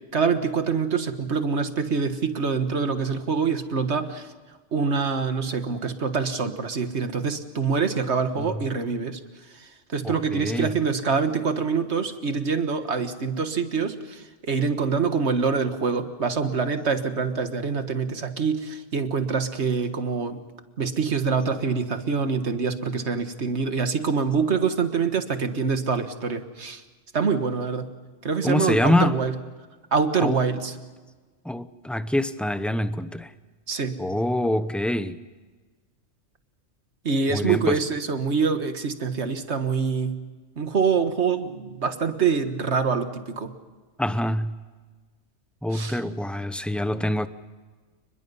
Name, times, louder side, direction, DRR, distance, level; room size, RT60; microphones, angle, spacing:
voice 1, 0.1-4.3 4.7-9.2 9.5-20.4 20.8-26.8 27.1-27.9 28.2-29.3 29.9-30.7 33.7-34.0 37.0-40.2 40.6-43.5 45.7-46.0, right 5 dB, 60° right, 1.8 m, -25 dB
voice 2, 10.0-10.7 28.4-29.2 30.2-30.4 31.4-33.3 34.0-35.2 37.3-37.8 44.0-44.5 45.6-47.3, left 1 dB, ahead, 0.6 m, -25 dB
29.5 x 21.5 x 5.5 m
omnidirectional pair, 1.3 m